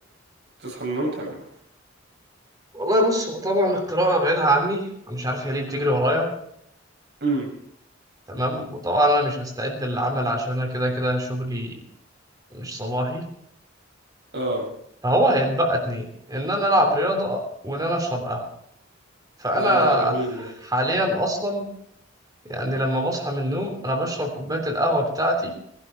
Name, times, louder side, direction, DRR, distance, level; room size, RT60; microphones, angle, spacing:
voice 1, 0.6-1.4 7.2-7.5 14.3-14.7 19.5-20.4, right 2 dB, 60° right, 0 dB, 6.1 m, -27 dB
voice 2, 2.7-6.3 8.3-11.8 12.5-13.2 15.0-18.5 19.4-21.7 22.5-25.5, equal, 20° right, 3 dB, 3.2 m, -23 dB
19.5 x 11.5 x 4.5 m, 0.71 s
head